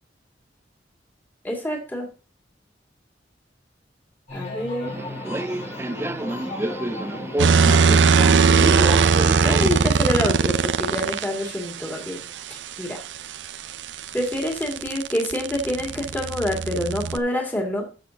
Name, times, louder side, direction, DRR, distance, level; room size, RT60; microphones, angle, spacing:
voice 1, 1.4-2.1 4.3-5.0 9.4-12.2 12.8-13.0 14.1-17.9, left 1 dB, 10° left, -1 dB, 2.3 m, -27 dB
sound 1, 4.3-13.8 14.2-14.8, left 2 dB, 40° left, 5.0 m, -39 dB
Subway metro underground, 4.9-9.9, right 1 dB, 15° right, 0.3 m, -28 dB
sound 2, 7.4-11.3 13.5-17.2, right 5 dB, 80° right, 0.5 m, -19 dB
14.0 x 6.5 x 2.8 m, 0.35 s
head